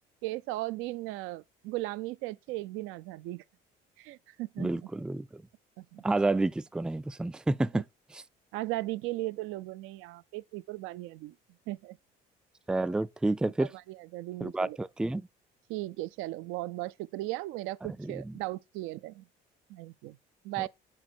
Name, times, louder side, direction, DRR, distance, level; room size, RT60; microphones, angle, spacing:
voice 1, 0.2-3.4 4.0-4.9 5.8-6.0 7.7-7.8 8.5-11.3 11.7-12.0 13.6-14.8 15.7-19.2 19.7-20.2 20.4-20.7, right 18 dB, 75° right, 0.4 m, -37 dB
voice 2, 4.6-5.4 6.0-7.8 8.1-8.2 12.7-13.7 14.4-15.3 18.0-18.3 20.6-20.7, right 2 dB, 5° right, 0.3 m, -30 dB
6.1 x 4.4 x 4.3 m
supercardioid pair, 70°, 21 cm